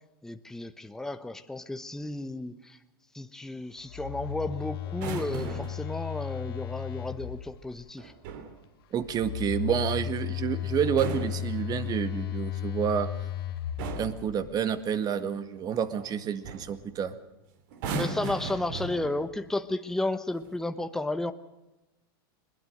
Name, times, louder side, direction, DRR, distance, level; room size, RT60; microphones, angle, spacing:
voice 1, 0.2-2.8 3.1-8.1 17.9-21.3, left 2 dB, 5° left, 9 dB, 1.1 m, -33 dB
Telephone, 3.8-7.8 9.0-14.7, left 11 dB, 75° left, 1.7 m, -35 dB
sound 1, 4.9-5.9 8.0-8.6 10.8-12.1 13.2-13.4 13.8-14.3 16.0-16.1 16.4-16.8 17.7-19.4 20.3-20.6, right 4 dB, 60° right, 3.3 m, -37 dB
voice 2, 8.9-13.1 14.0-17.1, right 8 dB, 30° right, 11 dB, 1.9 m, -29 dB
21.5 x 21.0 x 6.6 m, 0.99 s
hypercardioid pair, 115°, 12 cm